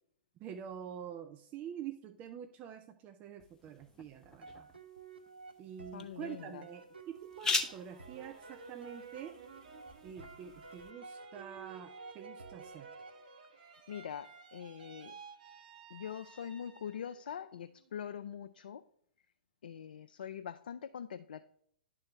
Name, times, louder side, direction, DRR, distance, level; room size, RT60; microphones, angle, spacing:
voice 1, 0.4-4.7 5.6-9.4 10.0-12.9, right 9 dB, 30° right, 9 dB, 0.5 m, -46 dB
sound 1, 3.4-10.9, left 4 dB, 10° left, 0.7 m, -42 dB
sound 2, 4.4-13.7, right 3 dB, 85° right, 0.8 m, -52 dB
voice 2, 5.9-6.7 13.6-15.2 15.9-18.8 19.6-21.4, left 8 dB, 65° left, 9 dB, 0.4 m, -44 dB
sound 3, 7.4-17.2 17.6-18.3, right 6 dB, 55° right, 1.0 m, -56 dB
10.5 x 3.8 x 4.4 m, 0.67 s
figure-of-eight pair, 110°, 5 cm